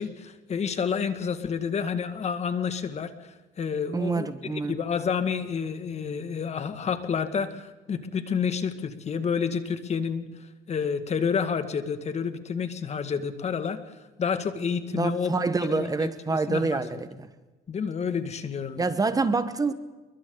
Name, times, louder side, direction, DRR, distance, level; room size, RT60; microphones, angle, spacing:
voice 1, 0.0-3.1 3.6-10.2 10.7-13.8 14.2-15.3 15.7-17.0 17.7-18.9, left 6 dB, 40° left, 2.0 m, -29 dB
voice 2, 3.9-4.8 14.9-17.3 18.8-19.7, right 4 dB, 20° right, 1.3 m, -27 dB
28.5 x 23.0 x 4.0 m
cardioid pair, 110°, 17 cm